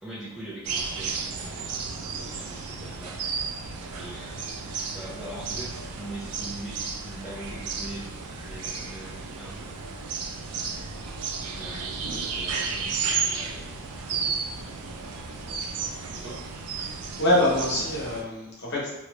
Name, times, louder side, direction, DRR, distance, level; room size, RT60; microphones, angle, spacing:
voice 1, 0.0-3.2 4.0-10.0 10.5-10.9 11.5-16.4, right 1 dB, ahead, -8 dB, 0.6 m, -43 dB
sound 1, 0.6-18.2, right 5 dB, 85° right, 0.4 m, -33 dB
voice 2, 16.8-18.9, left 1 dB, 50° left, -5 dB, 1.0 m, -25 dB
2.9 x 2.3 x 3.2 m, 1.0 s
head